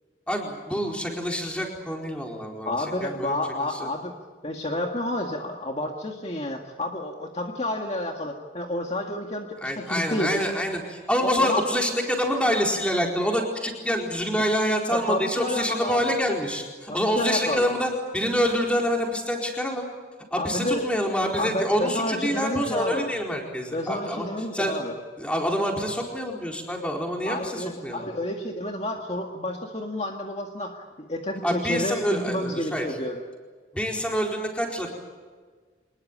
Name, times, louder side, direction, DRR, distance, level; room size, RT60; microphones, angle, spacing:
voice 1, 0.3-2.7 3.0-3.9 9.6-19.9 20.3-24.3 24.5-24.8 25.2-28.1 31.4-32.9 33.7-34.9, equal, 5° left, 0 dB, 4.4 m, -26 dB
voice 2, 2.7-4.1 4.4-10.5 11.2-11.6 14.3-14.4 14.9-16.2 16.9-17.7 20.4-20.8 21.4-23.1 23.7-25.0 27.3-33.2, left 1 dB, 35° left, 2 dB, 2.0 m, -30 dB
25.5 x 21.0 x 8.8 m, 1.5 s
head